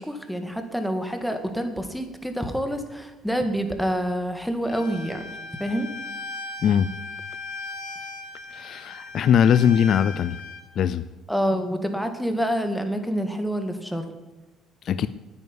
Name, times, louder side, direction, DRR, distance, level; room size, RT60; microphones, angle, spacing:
voice 1, 0.0-5.2 5.6-5.9 11.3-14.1, equal, ahead, 6 dB, 2.1 m, -27 dB
Bowed string instrument, 4.7-10.6, left 3 dB, 85° left, 2.7 m, -38 dB
voice 2, 8.5-10.4 10.8-11.0 14.8-15.1, left 8 dB, 55° left, 15 dB, 0.5 m, -20 dB
9.7 x 9.7 x 9.9 m, 1.1 s
cardioid pair, 100°, 0 cm